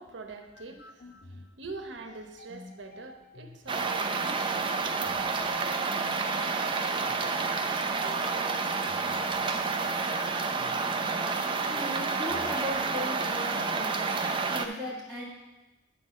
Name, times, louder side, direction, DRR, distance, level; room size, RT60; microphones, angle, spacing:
voice 1, 0.0-4.8 5.5-5.6, right 3 dB, 80° right, 4 dB, 1.0 m, -44 dB
sound 1, 0.5-13.8, left 2 dB, 55° left, 0.7 m, -50 dB
sound 2, 3.7-14.7, right 4 dB, 25° right, 0.5 m, -29 dB
voice 2, 11.7-14.0 14.5-15.2, left 1 dB, 10° left, -11 dB, 2.1 m, -37 dB
9.6 x 4.0 x 6.3 m, 1.0 s
head